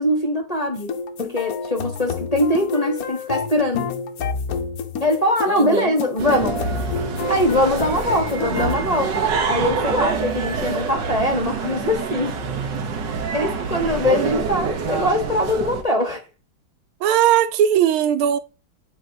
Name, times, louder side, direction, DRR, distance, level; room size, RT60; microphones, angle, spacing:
voice 1, 0.0-3.9 5.0-6.6 7.3-12.4 13.3-16.2, left 1 dB, 25° left, 1.0 m, -22 dB
sound 1, 0.8-8.7, left 5 dB, 60° left, 1.0 m, -28 dB
voice 2, 5.5-5.9 17.0-18.4, right 10 dB, 85° right, 1.5 m, -19 dB
sound 2, 6.2-15.8, right 5 dB, 60° right, 1.6 m, -26 dB
11.5 x 3.9 x 2.8 m
omnidirectional pair, 2.2 m